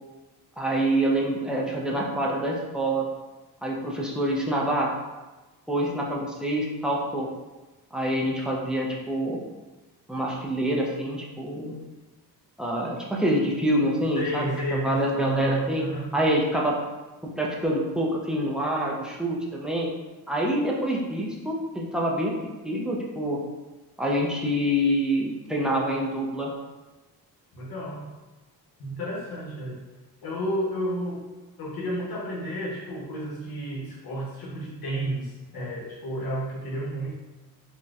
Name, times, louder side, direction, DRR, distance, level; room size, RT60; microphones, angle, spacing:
voice 1, 0.6-3.1 3.6-4.9 5.7-7.3 7.9-9.4 10.1-11.8 12.6-15.8 16.1-16.7 17.3-19.9 20.3-22.4 22.6-23.4 24.0-26.5, right 1 dB, ahead, -3 dB, 0.3 m, -26 dB
voice 2, 14.2-16.1 27.5-28.1 28.8-29.8 30.2-31.3 31.6-37.1, right 1 dB, 65° left, -4 dB, 0.9 m, -31 dB
4.0 x 2.1 x 2.3 m, 1.2 s
wide cardioid pair, 140°, 39 cm